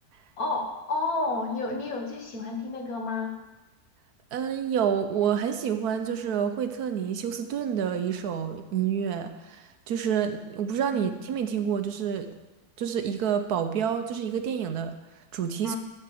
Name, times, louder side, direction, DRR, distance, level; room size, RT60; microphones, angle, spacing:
voice 1, 0.4-3.3 10.9-11.1 15.6-15.8, left 3 dB, 60° left, 2 dB, 1.7 m, -30 dB
voice 2, 4.3-12.3 12.8-14.9 15.3-15.7, right 8 dB, 70° right, 8 dB, 1.2 m, -28 dB
12.0 x 4.6 x 7.6 m, 1.1 s
omnidirectional pair, 1.8 m